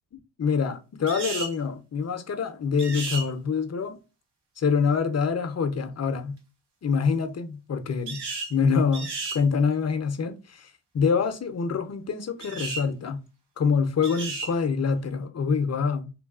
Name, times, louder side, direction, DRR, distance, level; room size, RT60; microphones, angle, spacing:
voice 1, 0.4-4.0 4.6-6.4 6.8-8.2 8.5-13.2 13.6-16.1, left 5 dB, 40° left, 0.6 m, -26 dB
sound 1, 1.1-1.6 2.8-3.3 8.1-8.5 8.9-9.4 12.4-12.9 14.0-14.5, right 3 dB, 75° right, 0.9 m, -33 dB
3.2 x 2.2 x 2.3 m
cardioid pair, 55°, 43 cm